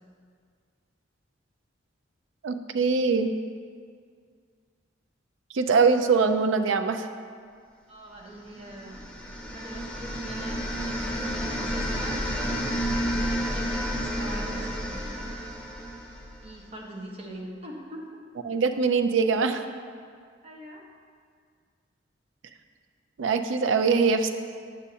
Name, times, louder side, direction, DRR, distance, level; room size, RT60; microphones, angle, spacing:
voice 1, 2.4-3.3 5.5-7.1 18.5-19.7 23.2-24.3, right 4 dB, 75° right, 8 dB, 0.4 m, -23 dB
voice 2, 7.9-9.0 9.5-15.4 16.4-18.0 20.4-20.8, right 1 dB, 30° right, -2 dB, 0.9 m, -42 dB
sound 1, 8.6-16.6, equal, 5° left, 0.6 m, -31 dB
8.2 x 6.3 x 2.8 m, 2.1 s
head